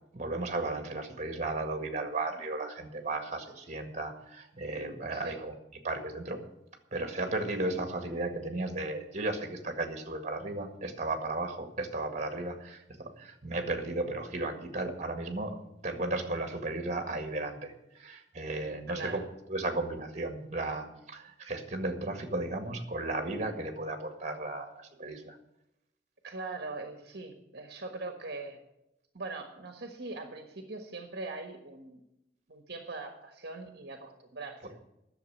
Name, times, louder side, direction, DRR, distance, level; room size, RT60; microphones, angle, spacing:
voice 1, 0.1-5.5 5.8-6.4 6.9-15.6 15.8-19.2 19.5-25.4, right 2 dB, 40° right, 5 dB, 1.8 m, -35 dB
voice 2, 18.9-19.3 26.2-28.6 29.1-32.0 32.5-34.8, right 3 dB, 60° right, 4 dB, 1.4 m, -41 dB
11.0 x 7.1 x 9.6 m, 0.88 s
head